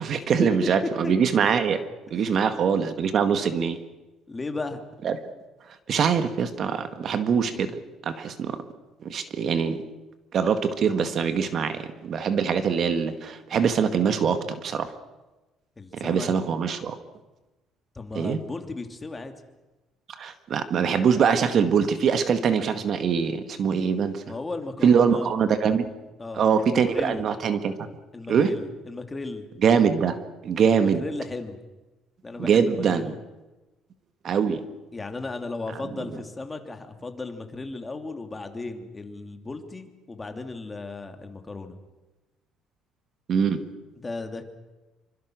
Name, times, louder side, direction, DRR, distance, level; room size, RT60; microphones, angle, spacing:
voice 1, 0.0-1.8 2.1-3.8 5.0-5.2 5.9-7.8 8.0-8.6 9.0-9.8 10.3-14.9 15.9-17.0 18.1-18.4 20.1-24.2 24.8-25.9 26.3-27.7 28.3-28.5 29.6-30.2 30.4-31.0 32.4-33.1 34.2-34.6 43.3-43.6, right 6 dB, 45° right, 9 dB, 1.9 m, -23 dB
voice 2, 4.3-4.8 15.8-16.3 17.9-19.3 24.3-25.4 26.2-27.2 28.1-29.4 30.6-31.6 32.2-33.2 34.9-41.7 44.0-44.4, left 3 dB, 15° left, 5 dB, 2.7 m, -35 dB
26.5 x 25.0 x 6.3 m, 1.1 s
cardioid pair, 130°, 0 cm